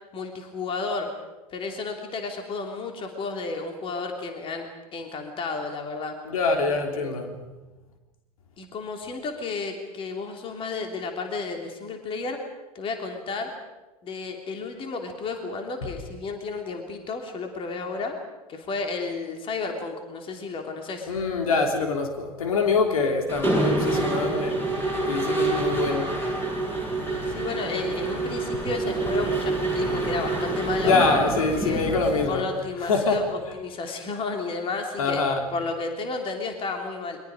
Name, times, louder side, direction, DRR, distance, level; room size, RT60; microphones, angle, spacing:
voice 1, 0.1-1.1 1.5-6.1 6.9-7.2 8.6-12.4 12.7-13.5 14.0-18.2 18.5-21.1 27.3-31.0 31.6-31.8 32.3-35.2 35.5-37.2, left 4 dB, 25° left, 3 dB, 3.2 m, -32 dB
voice 2, 6.3-7.4 21.1-24.6 25.0-26.2 30.8-32.4 32.8-33.3 35.0-35.4, left 4 dB, 65° left, 3 dB, 3.4 m, -24 dB
Mechanisms, 23.3-32.3, right 2 dB, 10° left, 8.0 m, -27 dB
30.0 x 23.5 x 5.1 m, 1.1 s
figure-of-eight pair, 85°, 19 cm